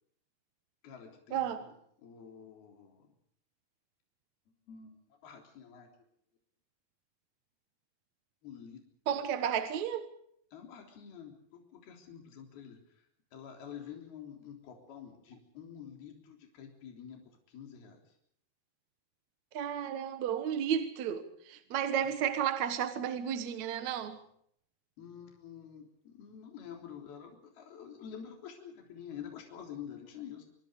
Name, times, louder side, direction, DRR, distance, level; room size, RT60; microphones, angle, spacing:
voice 1, 0.8-1.7 2.0-3.1 4.7-5.9 8.4-9.3 10.5-18.0 21.2-21.3 22.0-22.1 25.0-30.5, left 8 dB, 65° left, 5.4 m, -48 dB
voice 2, 9.1-10.1 19.5-24.2, right 9 dB, 60° right, 2.1 m, -32 dB
27.0 x 23.5 x 5.1 m
omnidirectional pair, 4.7 m